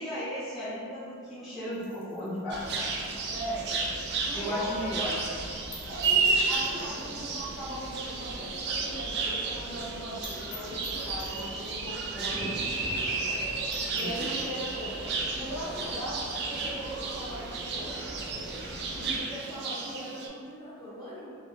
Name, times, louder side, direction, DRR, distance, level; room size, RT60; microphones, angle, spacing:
voice 1, 0.0-2.8 4.3-5.2 12.1-12.6 14.0-14.3, equal, ahead, -17 dB, 0.5 m, -35 dB
sound 1, 1.7-4.4 4.7-4.8 5.1-5.2 5.7-7.1 7.4-7.5 7.8-7.9 8.3-8.4 8.6-8.7 9.0-9.1 9.4-9.5 9.9-10.0 10.2-11.9 12.6-12.7 13.0-13.1 13.4-13.5 13.7-14.7, left 4 dB, 75° left, 0.6 m, -50 dB
sound 2, 2.5-19.2, equal, 55° left, 1.3 m, -43 dB
sound 3, 2.5-20.3, right 4 dB, 55° right, 0.3 m, -32 dB
voice 2, 3.3-4.6 5.9-12.4 12.8-13.4 13.9-15.0 15.3-18.5 18.9-21.3, right 1 dB, 20° left, -11 dB, 0.9 m, -40 dB
2.8 x 2.1 x 2.8 m, 2.2 s
head